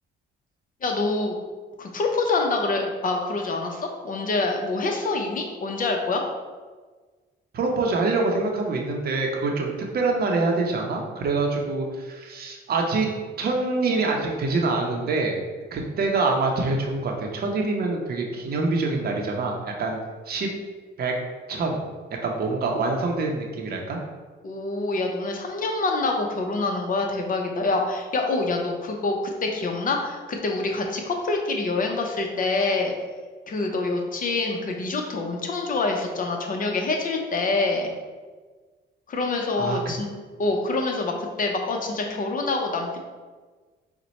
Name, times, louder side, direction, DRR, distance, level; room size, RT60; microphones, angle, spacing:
voice 1, 0.8-1.4 1.8-6.2 24.4-29.2 29.4-32.9 33.5-37.9 39.1-40.1 40.4-43.0, left 3 dB, 45° left, 2 dB, 0.7 m, -26 dB
voice 2, 7.5-13.1 13.4-15.4 15.7-20.0 20.3-20.5 21.0-21.2 21.5-21.8 22.2-24.0 39.6-39.8, right 3 dB, 50° right, 1 dB, 0.7 m, -25 dB
4.2 x 2.2 x 4.1 m, 1.4 s
cardioid pair, 90°, 20 cm